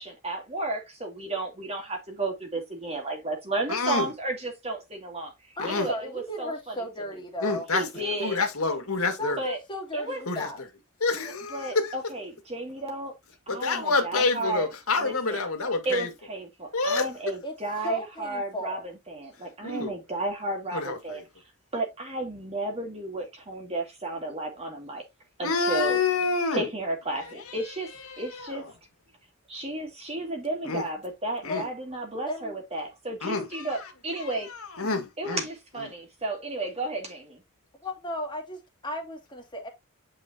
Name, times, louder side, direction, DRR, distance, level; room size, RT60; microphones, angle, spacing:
voice 1, 0.0-5.3 5.7-6.1 6.4-6.7 7.7-8.4 9.4-9.6 9.9-10.2 11.5-13.1 13.5-14.7 15.0-15.4 15.8-18.8 19.1-21.2 21.7-25.0 25.4-26.0 26.5-27.9 28.2-28.6 29.5-34.5 35.2-37.4, right 2 dB, 30° right, 2.4 m, -33 dB
voice 2, 3.7-4.1 5.6-5.9 7.4-7.9 8.2-9.4 10.3-10.5 11.0-11.9 13.5-16.1 16.7-17.1 19.6-19.9 20.7-21.2 25.4-26.7 28.1-28.7 30.6-30.8 31.4-31.6 33.2-35.4 35.8-35.9, left 3 dB, 85° left, 2.1 m, -28 dB
voice 3, 5.6-7.7 7.9-8.2 9.2-10.6 17.4-17.6 17.8-18.8 31.4-31.6 32.3-32.6 37.8-39.7, left 1 dB, 20° left, 2.4 m, -35 dB
8.9 x 4.8 x 2.9 m
head